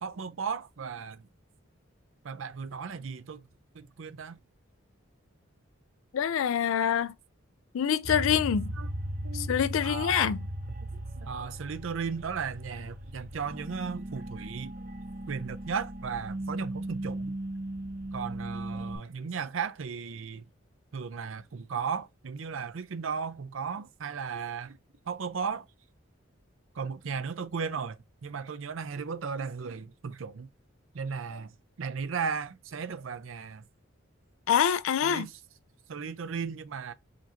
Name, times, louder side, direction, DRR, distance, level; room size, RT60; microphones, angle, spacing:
voice 1, 0.0-1.3 2.2-3.4 3.7-4.4 8.8-8.9 9.2-9.5 9.8-10.3 11.2-14.7 15.3-17.3 18.1-20.4 20.9-24.8 25.1-25.7 26.7-30.5 30.9-31.5 31.8-33.6 35.0-35.4 35.9-36.9, right 6 dB, 75° right, 0.5 m, -35 dB
voice 2, 6.1-7.1 7.7-8.7 9.3-10.4 34.5-35.3, left 8 dB, 80° left, 0.4 m, -26 dB
sound 1, 8.0-19.0, right 1 dB, 40° right, 0.7 m, -37 dB
5.1 x 2.8 x 2.6 m
head